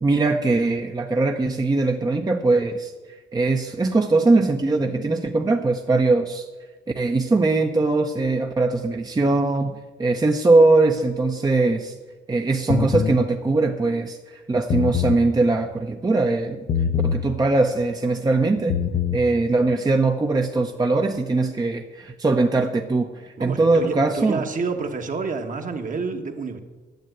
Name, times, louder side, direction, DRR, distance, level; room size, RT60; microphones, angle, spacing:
voice 1, 0.0-2.9 3.3-6.4 7.0-11.9 12.3-14.2 14.5-16.6 17.0-18.8 19.1-24.4, right 3 dB, 20° right, 4 dB, 0.8 m, -21 dB
sound 1, 12.7-13.2 14.6-15.2 16.7-17.2 18.6-19.2, left 7 dB, 55° left, 0.7 m, -23 dB
voice 2, 23.4-26.6, right 4 dB, 40° right, 5 dB, 1.4 m, -29 dB
10.5 x 7.4 x 8.0 m, 1.3 s
cardioid pair, 90°, 20 cm